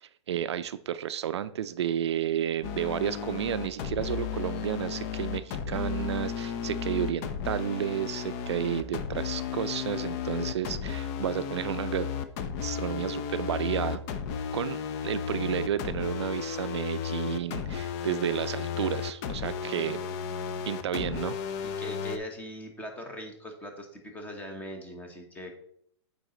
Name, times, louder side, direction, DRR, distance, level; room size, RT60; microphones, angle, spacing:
voice 1, 0.0-12.1 12.6-14.0 14.5-20.0 20.7-21.4, right 10 dB, 70° right, 13 dB, 0.4 m, -31 dB
sound 1, 2.6-22.2, left 7 dB, 35° left, 0.6 m, -34 dB
voice 2, 21.6-25.5, equal, 10° left, 3 dB, 1.2 m, -41 dB
8.9 x 4.0 x 3.9 m, 0.69 s
hypercardioid pair, 135°, 15 cm